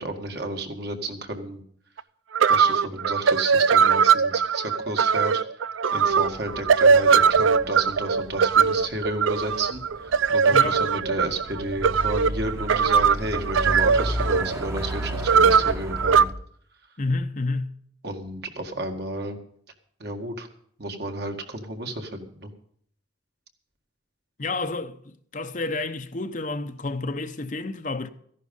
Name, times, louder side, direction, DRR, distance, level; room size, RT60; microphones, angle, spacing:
voice 1, 0.0-1.6 2.5-5.4 5.9-16.3 18.0-19.4 20.0-20.5 20.8-22.5, right 2 dB, 55° right, 1.9 m, -32 dB
sound 1, 2.0-2.1 2.3-16.2, right 6 dB, 85° right, 0.5 m, -20 dB
sound 2, 6.1-16.3, equal, 15° right, 1.0 m, -34 dB
voice 2, 17.0-17.7 24.4-25.0 25.3-28.1, left 3 dB, 40° left, 0.8 m, -29 dB
15.0 x 11.0 x 5.4 m
head